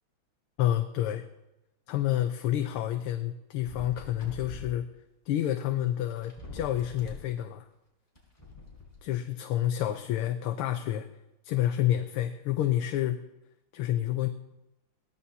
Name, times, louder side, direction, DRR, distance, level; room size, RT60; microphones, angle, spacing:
voice 1, 0.6-1.2 1.9-4.9 5.3-7.7 9.0-11.1 11.4-13.2 13.7-14.3, left 12 dB, 80° left, 7 dB, 1.6 m, -29 dB
sound 1, 3.6-4.8 5.8-5.9 6.1-7.3 8.1-9.0, left 2 dB, 15° left, 4.3 m, -44 dB
22.0 x 16.5 x 2.8 m, 0.93 s
omnidirectional pair, 2.4 m